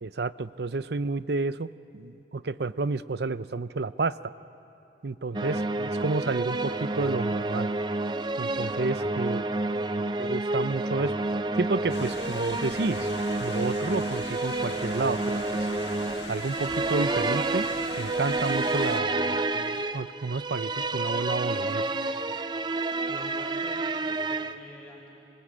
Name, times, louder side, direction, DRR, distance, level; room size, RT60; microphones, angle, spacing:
voice 1, 0.0-4.3 5.0-7.7 8.4-9.4 10.2-11.1 11.6-15.7 16.3-17.7 18.0-21.9, right 3 dB, 70° right, 15 dB, 0.6 m, -30 dB
sound 1, 5.3-24.5, right 2 dB, 25° right, 0.6 m, -29 dB
voice 2, 9.2-10.1 23.1-25.1, equal, 5° left, -4 dB, 5.5 m, -48 dB
sound 2, 11.9-19.0, left 5 dB, 75° left, 1.5 m, -42 dB
26.0 x 26.0 x 8.7 m, 2.8 s
head